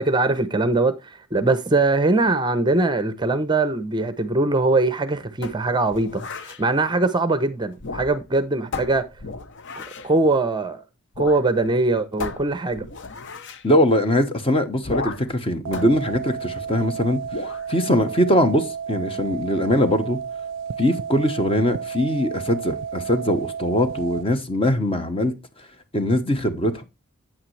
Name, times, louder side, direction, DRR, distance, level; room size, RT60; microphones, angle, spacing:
voice 1, 0.0-9.1 10.0-10.8 11.2-12.9, right 2 dB, 20° right, 0.7 m, -21 dB
sound 1, 5.4-6.6 7.7-8.4 8.7-10.1 11.1-11.5 11.7-11.8 12.2-13.7 14.8-15.4 15.7-16.8 17.3-17.7, left 3 dB, 55° left, 0.8 m, -34 dB
voice 2, 13.6-20.2 20.8-25.7 25.9-26.8, left 1 dB, 25° left, 1.0 m, -22 dB
sound 2, 15.6-24.2, right 7 dB, 55° right, 0.4 m, -32 dB
8.8 x 8.7 x 3.2 m
head